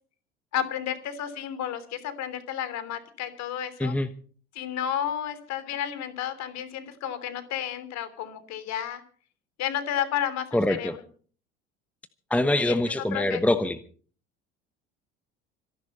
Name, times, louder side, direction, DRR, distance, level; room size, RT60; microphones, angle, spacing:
voice 1, 0.5-4.0 4.5-9.0 9.6-11.0 12.6-12.8 13.1-13.4, left 10 dB, 50° left, 13 dB, 3.1 m, -32 dB
voice 2, 10.5-11.0 12.3-13.8, left 1 dB, 5° left, 13 dB, 1.1 m, -24 dB
26.0 x 11.0 x 4.2 m, 0.43 s
figure-of-eight pair, 65°, 34 cm